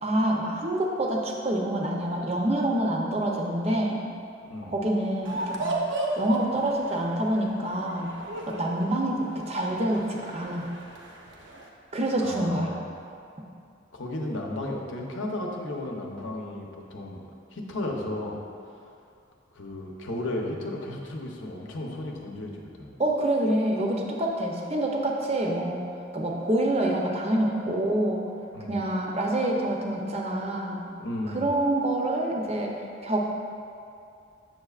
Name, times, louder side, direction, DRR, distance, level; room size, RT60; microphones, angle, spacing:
voice 1, 0.0-4.0 4.6-5.8 6.2-8.1 8.5-10.7 11.9-12.8 23.0-25.9 26.1-28.2 28.7-30.8 31.3-32.7 33.0-33.3, right 1 dB, 30° right, 0 dB, 0.6 m, -26 dB
sound 1, 5.2-11.7, right 2 dB, 70° right, 0.7 m, -35 dB
voice 2, 12.2-12.8 13.9-17.2 17.5-18.4 19.5-23.0 28.5-28.8 31.0-31.5, left 1 dB, 70° left, 0 dB, 0.8 m, -34 dB
7.6 x 6.7 x 2.4 m, 2.5 s
head